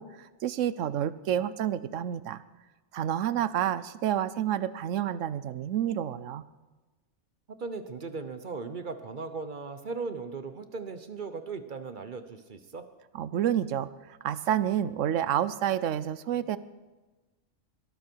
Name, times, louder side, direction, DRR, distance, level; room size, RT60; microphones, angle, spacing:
voice 1, 0.0-2.4 2.9-6.4 13.1-13.9 14.2-16.6, right 10 dB, 85° right, 16 dB, 1.0 m, -29 dB
voice 2, 7.6-12.9, right 4 dB, 45° right, 10 dB, 1.0 m, -37 dB
22.0 x 13.5 x 4.6 m, 1.2 s
omnidirectional pair, 1.3 m